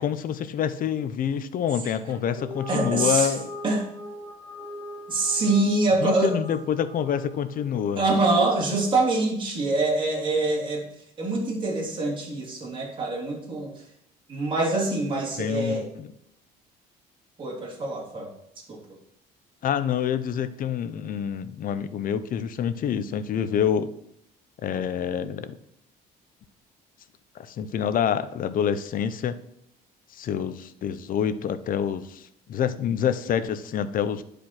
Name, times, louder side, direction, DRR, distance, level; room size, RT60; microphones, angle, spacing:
voice 1, 0.0-3.5 6.0-8.0 15.4-16.1 19.6-23.9 24.6-25.6 27.3-29.4 30.1-34.2, left 8 dB, 55° left, 13 dB, 0.8 m, -27 dB
sound 1, 2.3-8.8, left 1 dB, 10° left, 4.7 m, -41 dB
voice 2, 2.7-3.3 3.6-3.9 5.1-6.4 8.0-10.9 11.2-13.8 14.3-15.9 17.4-18.3 18.7-19.0, right 2 dB, 30° right, -3 dB, 3.3 m, -25 dB
10.5 x 5.1 x 6.1 m, 0.75 s
cardioid pair, 110°, 17 cm